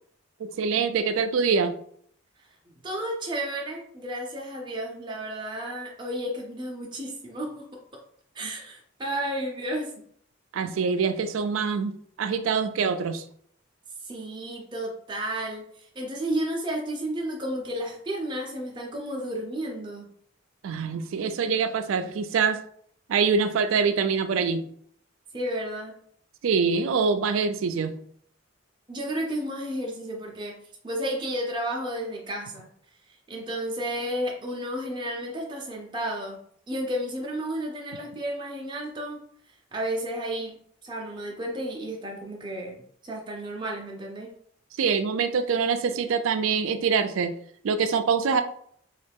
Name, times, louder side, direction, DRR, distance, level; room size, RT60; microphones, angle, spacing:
voice 1, 0.4-1.8 10.5-13.2 20.6-22.6 23.1-24.7 26.4-28.0 44.8-47.4 47.6-48.4, right 5 dB, 80° right, 9 dB, 0.3 m, -25 dB
voice 2, 2.8-7.6 8.3-9.9 14.0-15.6 15.9-20.1 25.3-25.9 28.9-30.5 30.8-32.7 33.3-36.4 36.7-39.2 39.7-40.6 40.8-44.3, right 1 dB, 25° right, -1 dB, 0.6 m, -32 dB
3.0 x 2.3 x 3.4 m, 0.63 s
head